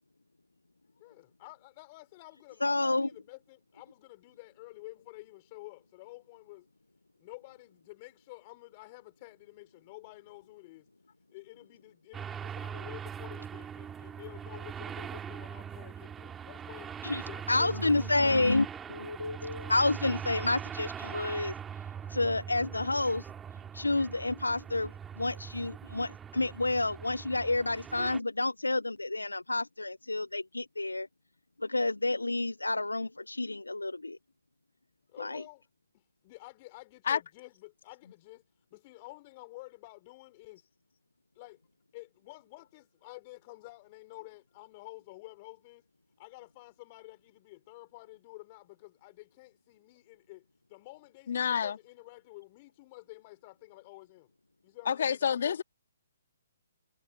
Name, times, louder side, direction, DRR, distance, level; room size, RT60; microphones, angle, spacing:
voice 1, 1.0-6.7 7.2-10.9 11.3-16.9 17.3-18.3 35.1-35.6 35.9-38.4 38.7-40.6 41.3-41.6 41.9-45.8 46.2-50.4 50.7-54.3 54.6-55.6, left 22 dB, 35° left, 4.6 m, -50 dB
voice 2, 2.6-3.1 17.0-17.2 17.5-21.5 22.1-23.2 23.7-31.1 31.6-33.9 35.2-35.4, left 2 dB, 90° left, 0.5 m, -29 dB
sound 1, 12.1-28.2, right 8 dB, 15° right, 2.4 m, -41 dB
voice 3, 51.3-51.8 54.9-55.6, left 7 dB, 60° left, 2.7 m, -28 dB
figure-of-eight pair, 135°, 0 cm